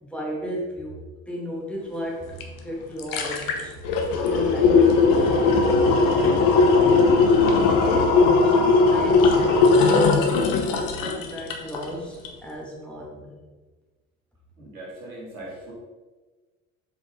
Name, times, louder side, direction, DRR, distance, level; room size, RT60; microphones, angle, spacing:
voice 1, 0.0-2.3 2.6-3.7 4.3-7.2 7.8-9.4 9.9-13.4, equal, 5° left, -3 dB, 2.1 m, -33 dB
sound 1, 2.4-2.5 2.8-11.9 12.2-12.3, left 4 dB, 50° left, 1.2 m, -18 dB
voice 2, 14.6-15.7, right 1 dB, 85° right, -4 dB, 2.0 m, -39 dB
7.1 x 5.1 x 3.8 m, 1.3 s
figure-of-eight pair, 65°, 42 cm